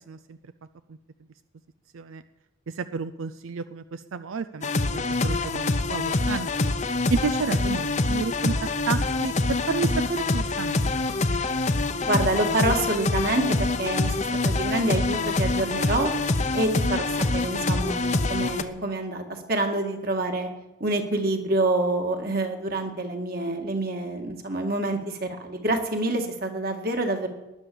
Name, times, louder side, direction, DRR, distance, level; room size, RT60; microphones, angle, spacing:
voice 1, 0.1-0.4 0.9-1.0 1.9-2.2 2.7-8.5 8.9-11.2, right 5 dB, 80° right, 12 dB, 0.5 m, -31 dB
sound 1, 4.6-18.6, left 2 dB, 35° left, 0.8 m, -25 dB
voice 2, 12.0-16.1 16.5-20.5 20.8-27.3, right 2 dB, 45° right, 4 dB, 2.1 m, -27 dB
19.0 x 10.5 x 7.1 m, 1.0 s
head